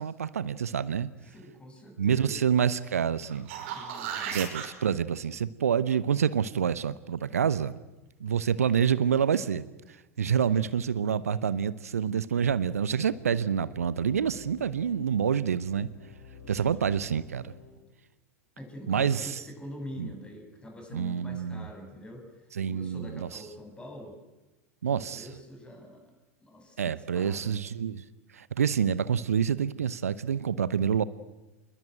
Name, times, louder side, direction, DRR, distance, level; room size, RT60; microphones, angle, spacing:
voice 1, 0.0-1.1 2.0-3.5 4.3-7.7 8.2-15.9 16.5-17.5 18.9-19.4 20.0-20.1 20.9-21.7 22.5-23.3 24.8-25.3 26.8-28.0 28.3-31.0, right 7 dB, 70° right, 17 dB, 0.9 m, -27 dB
voice 2, 1.3-2.5 3.7-4.4 10.4-10.7 16.4-16.9 18.6-22.3 22.7-24.2 24.9-26.1 26.4-27.6, equal, 10° left, 4 dB, 7.1 m, -45 dB
sound 1, 3.3-4.7 9.5-9.6, right 8 dB, 55° right, 5.3 m, -35 dB
sound 2, 12.3-17.7, left 6 dB, 70° left, 7.6 m, -50 dB
27.0 x 21.5 x 9.2 m, 1.1 s
figure-of-eight pair, 85°, 8 cm